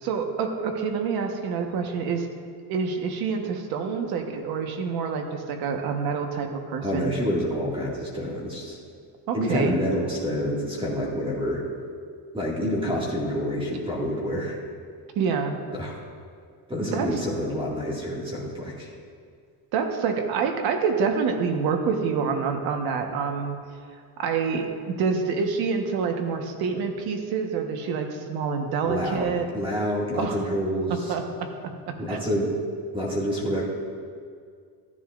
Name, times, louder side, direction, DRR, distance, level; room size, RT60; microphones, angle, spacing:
voice 1, 0.0-2.3 2.7-7.1 9.3-9.8 15.1-15.6 16.9-17.2 19.7-23.6 24.2-29.5 30.2-30.4 31.1-32.2, right 5 dB, 65° right, 4 dB, 1.3 m, -27 dB
voice 2, 6.8-8.8 9.3-11.6 12.3-14.6 15.7-16.0 16.7-18.9 28.9-31.1 32.0-32.5 32.9-33.6, equal, 15° right, -4 dB, 2.0 m, -28 dB
14.5 x 11.0 x 2.5 m, 2.1 s
cardioid pair, 130°, 40 cm